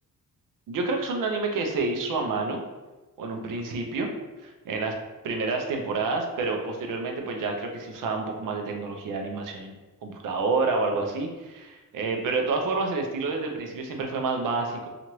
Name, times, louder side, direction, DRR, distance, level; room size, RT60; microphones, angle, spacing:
voice 1, 0.7-2.6 3.2-4.1 4.4-5.0 5.2-9.7 10.0-14.9, right 3 dB, 75° right, 3 dB, 0.6 m, -28 dB
3.0 x 2.5 x 2.9 m, 1.2 s
cardioid pair, 115°, 33 cm